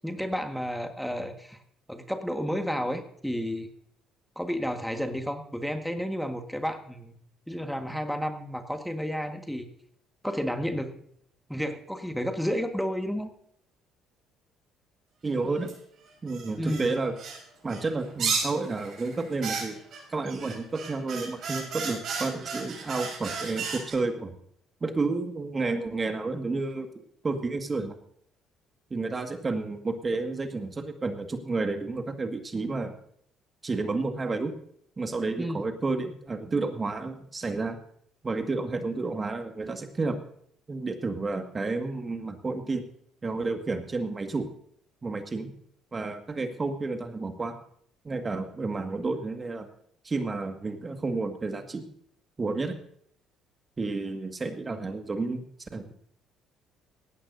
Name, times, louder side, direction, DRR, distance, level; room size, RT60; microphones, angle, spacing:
voice 1, 0.0-1.6 1.9-3.7 4.3-7.2 7.5-9.7 10.2-10.9 11.5-13.3 16.6-16.9 35.4-35.6, equal, ahead, 6 dB, 1.6 m, -31 dB
voice 2, 15.2-15.7 16.2-17.1 17.6-19.7 20.1-24.3 24.8-26.9 27.2-27.9 28.9-32.9 33.6-34.5 35.0-37.8 38.2-40.2 40.7-42.8 43.2-44.5 45.0-45.5 45.9-47.6 48.0-49.7 50.0-51.8 52.4-52.8 53.8-55.4 55.7-55.8, right 3 dB, 30° right, 6 dB, 1.9 m, -31 dB
sound 1, 15.7-15.8 16.3-17.4 17.7-23.9, right 5 dB, 55° right, 5.7 m, -34 dB
18.5 x 16.0 x 2.7 m, 0.66 s
hypercardioid pair, 50°, 0 cm